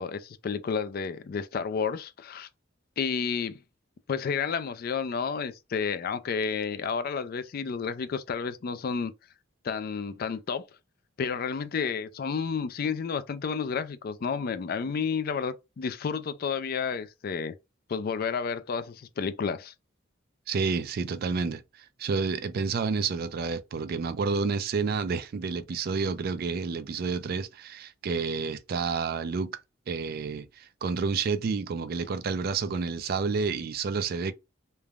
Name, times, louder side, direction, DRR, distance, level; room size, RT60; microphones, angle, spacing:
voice 1, 0.0-2.5 3.0-3.6 4.1-9.1 9.6-10.7 11.2-17.5 17.9-19.7, left 6 dB, 50° left, 0.3 m, -31 dB
voice 2, 20.5-29.6 29.9-34.3, right 5 dB, 50° right, 0.3 m, -30 dB
3.2 x 2.1 x 2.3 m
head